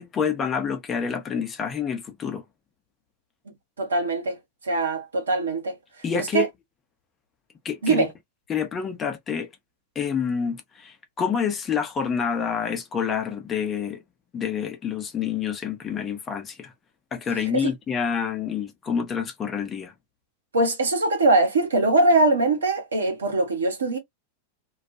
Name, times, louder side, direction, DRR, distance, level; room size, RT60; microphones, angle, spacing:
voice 1, 0.0-2.4 6.0-6.5 7.6-8.1 8.5-9.5 10.0-14.0 14.3-16.7 17.1-19.9, left 7 dB, 25° left, 0.7 m, -28 dB
voice 2, 3.8-4.4 4.6-5.8 6.1-6.5 7.8-8.1 17.5-17.7 20.5-24.0, right 2 dB, 70° right, 0.9 m, -22 dB
2.3 x 2.2 x 2.6 m
figure-of-eight pair, 90°, 0 cm